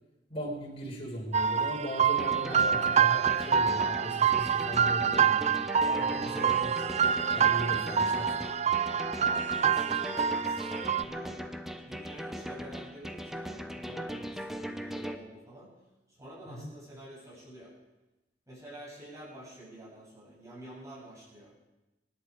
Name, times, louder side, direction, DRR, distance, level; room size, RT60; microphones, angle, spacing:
voice 1, 0.3-5.6 5.9-6.9 7.3-8.4 16.5-16.7, equal, 35° left, -2 dB, 5.0 m, -38 dB
sound 1, 1.3-11.0, right 7 dB, 40° right, 0.4 m, -27 dB
sound 2, 2.2-15.2, equal, ahead, 0.9 m, -39 dB
voice 2, 9.1-10.7 11.0-11.5 11.7-15.7 16.1-17.7 18.5-21.5, right 1 dB, 20° right, -8 dB, 7.5 m, -48 dB
25.5 x 11.0 x 4.9 m, 1.0 s
head